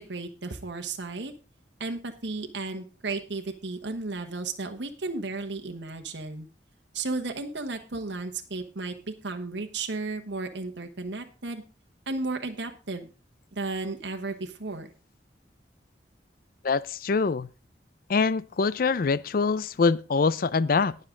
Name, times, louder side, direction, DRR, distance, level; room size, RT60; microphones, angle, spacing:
voice 1, 0.0-1.3 1.8-6.5 6.9-11.6 12.1-13.1 13.5-14.9, right 3 dB, 80° right, 1.2 m, -34 dB
voice 2, 16.6-17.5 18.1-21.0, left 4 dB, 55° left, 0.5 m, -24 dB
19.0 x 6.6 x 3.8 m
head